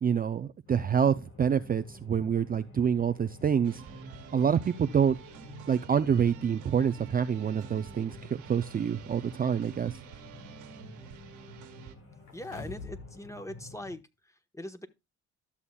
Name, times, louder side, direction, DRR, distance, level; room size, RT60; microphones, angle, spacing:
voice 1, 0.0-3.8 4.3-5.2 5.7-10.0, right 7 dB, 30° right, 0.5 m, -27 dB
sound 1, 0.7-13.9, left 4 dB, 45° left, 2.4 m, -51 dB
sound 2, 3.6-11.9, right 8 dB, 85° right, 1.7 m, -48 dB
sound 3, 12.3-13.1 13.5-13.6, left 4 dB, 80° left, 1.8 m, -43 dB
voice 2, 12.3-14.9, left 1 dB, 10° left, 1.2 m, -42 dB
12.5 x 7.1 x 2.3 m
cardioid pair, 90°, 30 cm